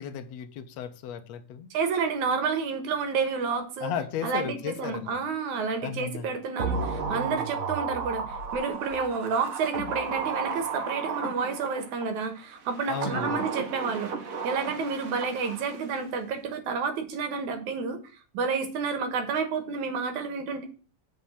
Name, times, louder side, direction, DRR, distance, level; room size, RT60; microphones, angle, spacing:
voice 1, 0.0-1.7 3.8-5.2 5.8-6.3 12.9-13.4, left 8 dB, 70° left, 8 dB, 2.1 m, -34 dB
voice 2, 1.7-3.9 4.2-14.1 14.4-18.0 18.3-20.6, right 5 dB, 90° right, 7 dB, 2.9 m, -30 dB
sound 1, 6.6-12.1 12.7-15.9 16.2-16.3, right 5 dB, 50° right, 1.0 m, -33 dB
7.8 x 5.8 x 7.3 m, 0.38 s
omnidirectional pair, 3.3 m